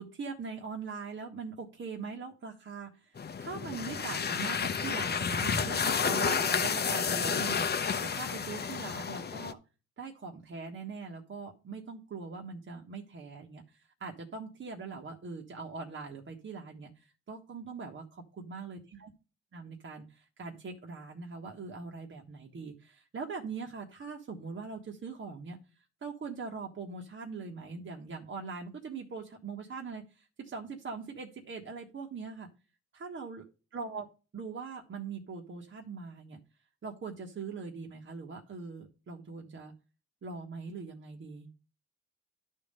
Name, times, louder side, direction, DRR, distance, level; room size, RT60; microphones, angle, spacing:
voice 1, 0.0-9.6 10.0-19.1 19.5-32.5 32.9-33.4 33.7-34.1 34.3-36.4 36.8-39.7 40.2-41.5, right 4 dB, 40° right, 2 dB, 1.4 m, -42 dB
sound 1, 3.2-9.5, left 6 dB, 35° left, 0.8 m, -31 dB
11.0 x 3.7 x 6.6 m, 0.34 s
cardioid pair, 90°, 30 cm